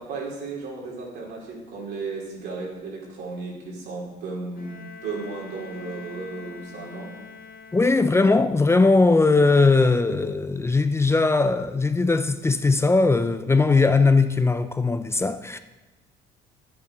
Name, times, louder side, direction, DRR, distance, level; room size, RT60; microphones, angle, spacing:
voice 1, 0.0-7.1, right 3 dB, 75° right, 4.3 m, -34 dB
Bowed string instrument, 4.6-8.3, left 5 dB, 60° left, 1.3 m, -44 dB
voice 2, 7.7-15.6, left 3 dB, 15° left, 0.5 m, -19 dB
10.5 x 8.6 x 6.8 m
cardioid pair, 110°, 17 cm